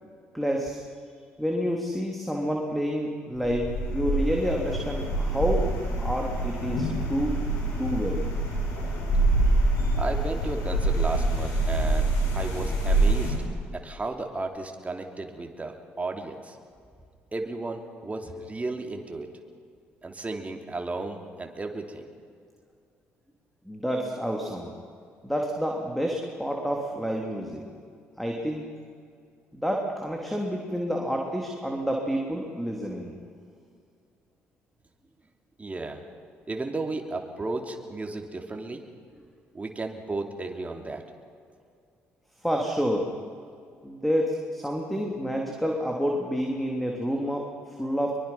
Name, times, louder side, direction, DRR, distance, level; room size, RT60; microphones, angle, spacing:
voice 1, 0.3-0.8 1.4-5.7 6.0-7.4 7.8-8.3 23.6-24.7 25.2-27.6 28.2-28.7 29.5-33.2 42.4-43.1 43.8-48.1, equal, ahead, 0 dB, 3.2 m, -29 dB
sound 1, 3.4-13.3, right 2 dB, 70° left, 6.6 m, -26 dB
voice 2, 10.0-13.4 13.7-16.6 17.3-19.3 20.0-22.1 35.6-36.0 36.5-38.8 39.5-41.0, right 3 dB, 25° right, 3 dB, 3.0 m, -34 dB
23.0 x 23.0 x 5.8 m, 2.3 s
hypercardioid pair, 50°, 6 cm